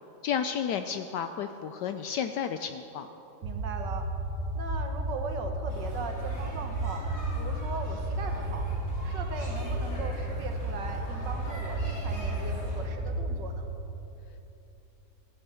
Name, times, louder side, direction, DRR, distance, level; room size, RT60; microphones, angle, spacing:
voice 1, 0.2-3.1, left 8 dB, 75° left, 8 dB, 1.0 m, -32 dB
sound 1, 3.4-13.4, right 1 dB, 40° right, 0.8 m, -33 dB
voice 2, 3.4-4.1 4.5-7.1 7.3-8.7 9.0-13.6, right 4 dB, 60° right, 5 dB, 1.7 m, -39 dB
sound 2, 5.7-12.9, equal, 40° left, 4.1 m, -42 dB
15.0 x 9.8 x 6.9 m, 3.0 s
omnidirectional pair, 2.2 m